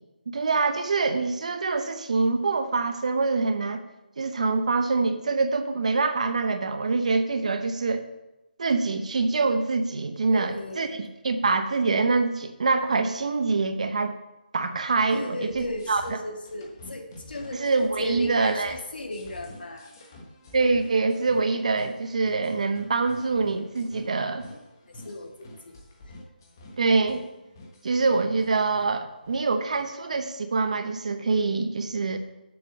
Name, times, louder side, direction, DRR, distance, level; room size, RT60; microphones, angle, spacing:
voice 1, 0.3-3.8 4.2-8.0 8.6-14.2 14.5-16.2 17.5-18.7 20.5-24.5 26.8-27.2 27.8-32.2, right 3 dB, 45° right, 9 dB, 0.8 m, -25 dB
voice 2, 10.3-11.0 15.1-17.7 18.0-19.9 24.9-25.8, left 1 dB, 65° left, 2 dB, 2.0 m, -35 dB
sound 1, 15.5-30.8, left 1 dB, 20° left, 1.2 m, -48 dB
7.3 x 6.3 x 6.3 m, 0.96 s
hypercardioid pair, 175°, 5 cm